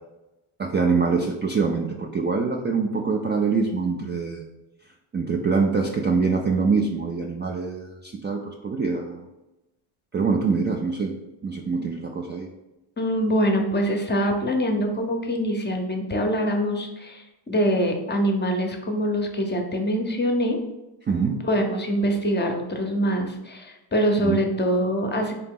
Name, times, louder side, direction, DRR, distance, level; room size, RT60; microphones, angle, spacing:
voice 1, 0.6-4.4 5.1-9.3 10.1-11.1 11.4-12.5 21.1-21.4 24.2-24.4, right 4 dB, 25° right, 1 dB, 0.3 m, -24 dB
voice 2, 13.0-20.6 21.4-25.3, equal, 20° left, 3 dB, 0.7 m, -24 dB
4.0 x 2.9 x 3.6 m, 0.99 s
cardioid pair, 85°, 49 cm